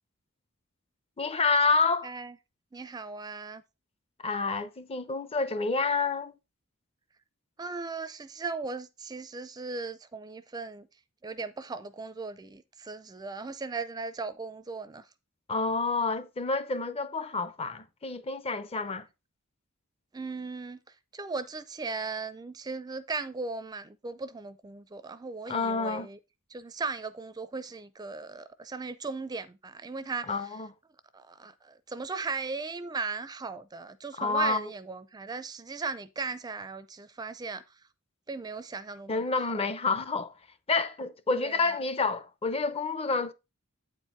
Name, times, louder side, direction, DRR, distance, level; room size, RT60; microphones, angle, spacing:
voice 1, 1.2-2.1 4.2-6.3 15.5-19.1 25.5-26.1 30.3-30.7 34.2-34.7 39.1-40.3 40.7-43.3, left 4 dB, 30° left, 0.6 m, -28 dB
voice 2, 2.0-2.4 2.7-3.6 7.6-10.9 11.2-15.0 20.1-20.8 21.1-26.2 26.5-30.3 31.1-37.6 38.3-39.2 41.4-41.8, right 4 dB, 20° right, 0.4 m, -37 dB
8.5 x 4.6 x 4.3 m
head